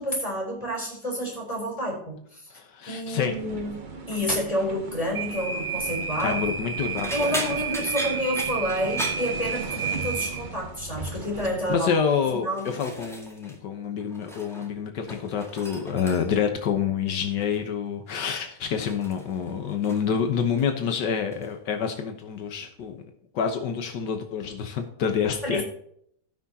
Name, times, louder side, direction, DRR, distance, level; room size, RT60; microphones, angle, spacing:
voice 1, 0.0-2.5 2.9-3.8 4.1-6.4 7.1-11.9 12.3-12.7 25.4-25.6, equal, 20° left, -2 dB, 4.0 m, -29 dB
voice 2, 2.5-3.3 6.2-7.6 11.7-23.0 23.3-25.6, left 7 dB, 80° left, 5 dB, 1.7 m, -27 dB
sound 1, 3.3-11.9, right 6 dB, 35° right, 0.9 m, -32 dB
sound 2, 6.0-6.4 7.0-10.0 10.3-10.6 11.0-11.5 12.2-13.6 13.9-14.7 15.0-16.5 17.4-17.7 18.1-20.1 20.4-20.9 21.3-21.5 22.8-22.9, equal, ahead, 1.9 m, -38 dB
17.0 x 6.2 x 2.8 m, 0.68 s
omnidirectional pair, 1.8 m